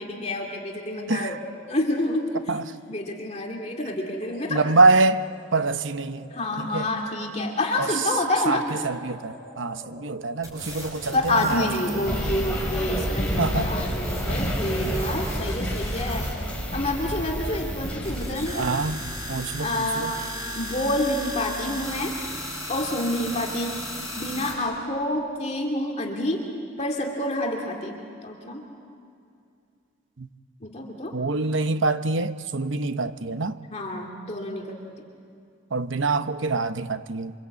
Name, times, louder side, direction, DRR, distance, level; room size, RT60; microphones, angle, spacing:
voice 1, 0.0-1.4 1.7-2.4 2.9-4.6 6.3-8.7 11.1-16.3 16.7-18.7 19.6-20.3 20.5-22.1 22.7-23.7 24.2-26.5 26.8-28.6 30.6-31.2 33.7-34.8, left 1 dB, 35° left, 2.5 m, -28 dB
sound 1, 4.1-18.8, equal, 50° right, 4.7 m, -47 dB
voice 2, 4.5-5.2 5.5-6.9 7.8-8.0 8.5-11.7 13.4-13.7 14.8-15.0 18.5-19.0 19.3-20.2 30.2-30.3 31.1-33.6 35.7-37.3, right 3 dB, 70° right, 0.9 m, -25 dB
sound 2, 10.4-24.5, equal, 15° right, 6.0 m, -36 dB
sound 3, 12.0-19.3, equal, 5° left, 3.6 m, -30 dB
27.5 x 25.0 x 8.4 m
head